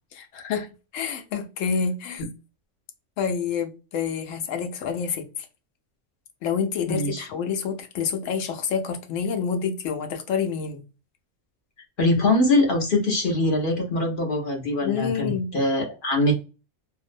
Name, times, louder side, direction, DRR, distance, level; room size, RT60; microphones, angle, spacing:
voice 1, 0.1-2.2 3.2-5.3 6.4-10.8 14.8-15.5, left 6 dB, 75° left, 0.9 m, -28 dB
voice 2, 6.9-7.3 12.0-16.3, left 2 dB, 50° left, 0.7 m, -23 dB
2.6 x 2.0 x 2.4 m
omnidirectional pair, 1.4 m